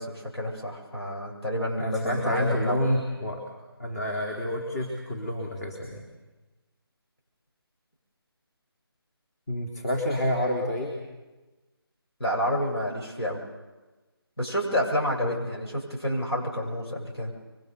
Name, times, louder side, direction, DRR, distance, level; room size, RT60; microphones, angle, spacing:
voice 1, 0.0-2.8 12.2-13.4 14.4-17.3, equal, 85° left, -1 dB, 7.9 m, -29 dB
voice 2, 1.8-3.4 3.8-6.1 9.5-10.9 15.2-15.4, left 1 dB, 40° left, 2 dB, 3.7 m, -28 dB
26.0 x 24.0 x 7.0 m, 1.2 s
figure-of-eight pair, 165°, 13 cm